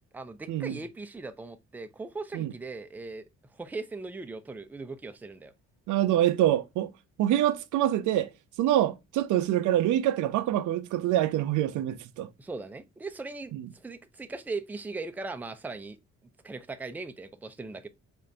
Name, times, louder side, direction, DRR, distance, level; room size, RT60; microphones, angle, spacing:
voice 1, 0.1-3.2 3.5-5.5 12.4-16.0 16.4-17.9, right 3 dB, 5° right, 0.4 m, -39 dB
voice 2, 5.9-6.9 7.2-8.3 8.6-12.3 13.5-13.6, right 12 dB, 80° right, 0.5 m, -25 dB
3.7 x 2.5 x 3.2 m
cardioid pair, 90°, 30 cm